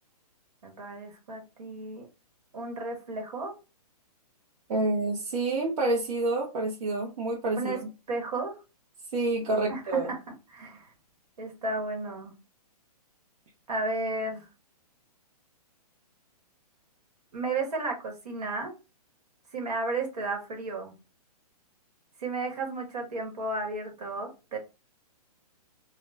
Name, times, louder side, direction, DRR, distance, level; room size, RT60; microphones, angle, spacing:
voice 1, 0.6-2.1 2.5-3.5 7.6-7.8 8.1-8.5 9.7-10.2 10.5-10.9 11.4-12.3 13.7-14.5 17.3-18.7 19.5-20.9 22.2-24.6, right 2 dB, 75° right, 2 dB, 1.2 m, -33 dB
voice 2, 4.7-7.7 9.1-10.1, right 2 dB, 60° right, -1 dB, 0.8 m, -28 dB
2.2 x 2.1 x 3.3 m, 0.29 s
hypercardioid pair, 145°, 20 cm